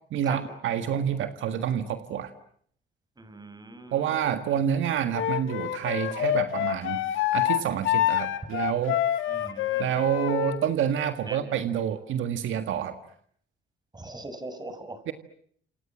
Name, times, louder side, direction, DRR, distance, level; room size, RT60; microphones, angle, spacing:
voice 1, 0.1-2.3 3.9-7.0 7.3-9.0 9.8-12.9 15.1-15.2, right 9 dB, 80° right, 9 dB, 1.7 m, -28 dB
voice 2, 3.2-4.0 9.3-9.8 11.3-11.4 13.9-15.0, right 2 dB, 20° right, 10 dB, 5.9 m, -40 dB
Wind instrument woodwind instrument, 5.1-10.6, left 12 dB, 85° left, 1.9 m, -27 dB
28.5 x 28.0 x 7.3 m, 0.62 s
cardioid pair, 90°, 20 cm